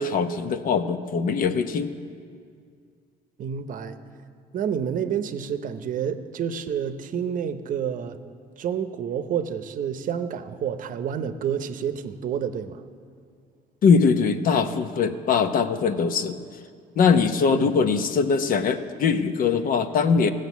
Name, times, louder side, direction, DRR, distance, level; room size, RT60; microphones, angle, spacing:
voice 1, 0.0-1.9 13.8-16.4 17.0-20.3, left 5 dB, 55° left, 9 dB, 0.8 m, -21 dB
voice 2, 3.4-4.0 4.5-8.2 8.6-12.8 17.5-17.7, right 8 dB, 50° right, 11 dB, 0.7 m, -29 dB
16.0 x 6.6 x 8.2 m, 2.2 s
cardioid pair, 110°, 17 cm